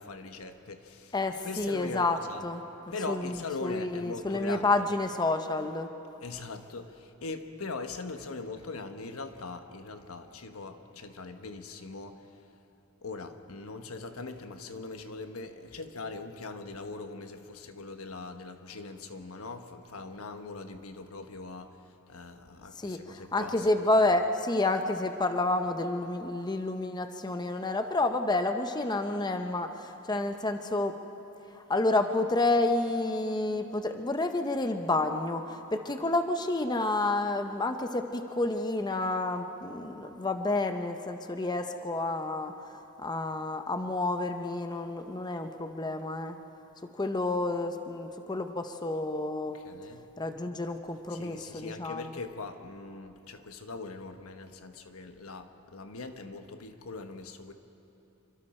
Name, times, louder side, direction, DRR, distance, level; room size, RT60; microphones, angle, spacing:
voice 1, 0.0-1.1 1.4-2.4 2.9-4.9 6.2-12.3 13.0-23.9 49.5-50.1 51.1-57.5, left 3 dB, 80° left, 7 dB, 1.3 m, -41 dB
voice 2, 1.1-2.2 2.4-2.6 3.1-5.9 22.8-31.0 31.5-42.5 43.0-46.4 47.0-49.6 50.2-52.2, left 2 dB, 20° left, 7 dB, 0.8 m, -29 dB
27.5 x 24.0 x 4.4 m, 2.9 s
head